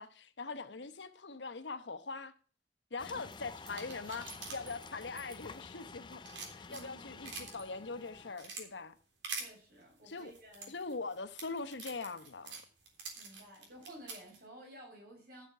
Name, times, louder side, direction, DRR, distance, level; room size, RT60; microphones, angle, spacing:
voice 1, 0.0-2.3 2.9-6.2 6.5-8.9 10.0-10.3 10.7-12.6, left 4 dB, 80° left, 1.0 m, -42 dB
voice 2, 0.5-0.8 3.1-3.3 6.7-7.4 9.3-10.7 13.2-15.5, right 1 dB, 55° right, 5.0 m, -54 dB
sound 1, 3.0-8.4, left 4 dB, 25° left, 0.4 m, -50 dB
sound 2, 3.3-5.8 6.1-7.6 8.1-8.6 9.2-9.5 10.2-14.4, right 4 dB, 90° right, 3.4 m, -45 dB
12.0 x 6.6 x 5.8 m
head